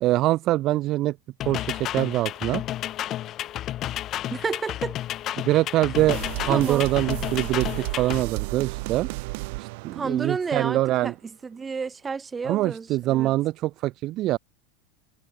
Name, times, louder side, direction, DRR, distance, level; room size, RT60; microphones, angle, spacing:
voice 1, 0.0-1.1 1.5-2.6 5.4-6.2 6.5-9.1 9.6-11.1 12.4-14.4, right 16 dB, 35° right, 0.4 m, -24 dB
sound 1, 1.4-8.2, left 13 dB, 30° left, 3.5 m, -31 dB
voice 2, 4.3-5.0 6.5-6.8 9.9-13.3, right 5 dB, 15° right, 3.1 m, -31 dB
sound 2, 6.0-11.0, right 27 dB, 55° right, 1.8 m, -33 dB
supercardioid pair, 160°, 0 cm